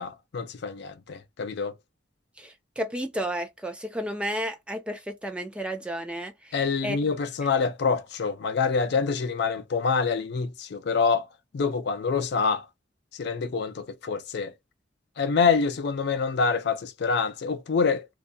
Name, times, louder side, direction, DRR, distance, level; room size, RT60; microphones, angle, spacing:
voice 1, 0.0-1.7 6.5-11.3 11.5-12.6 13.2-14.5 15.2-18.1, left 5 dB, 60° left, 0.4 m, -26 dB
voice 2, 2.4-6.5 6.8-7.0, equal, 5° right, 0.4 m, -32 dB
2.3 x 2.2 x 2.5 m
head